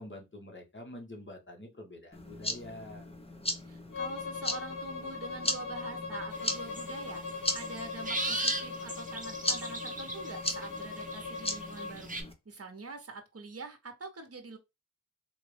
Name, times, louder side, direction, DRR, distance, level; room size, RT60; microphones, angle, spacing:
voice 1, 0.0-3.1, left 1 dB, 35° left, 1.6 m, -46 dB
sound 1, 2.1-12.3, left 1 dB, 20° left, 1.0 m, -38 dB
voice 2, 3.6-7.2 7.5-12.2 12.4-14.6, right 3 dB, 45° right, 1.0 m, -45 dB
Bowed string instrument, 3.9-12.0, left 4 dB, 80° left, 0.8 m, -40 dB
sound 2, 6.4-6.9 7.3-10.3 10.6-12.2, right 2 dB, 25° right, 1.2 m, -37 dB
3.9 x 2.5 x 3.2 m
cardioid pair, 50°, 32 cm